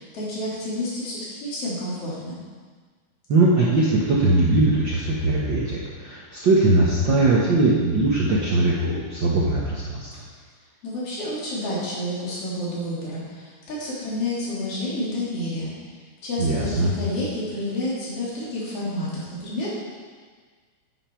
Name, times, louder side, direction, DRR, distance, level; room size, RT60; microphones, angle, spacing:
voice 1, 0.0-2.4 10.8-15.7 16.2-19.7, left 1 dB, 45° left, -7 dB, 3.9 m, -29 dB
voice 2, 3.3-10.1 16.4-16.9, right 2 dB, 65° right, -5 dB, 1.1 m, -20 dB
9.8 x 9.1 x 4.5 m, 1.5 s
omnidirectional pair, 3.8 m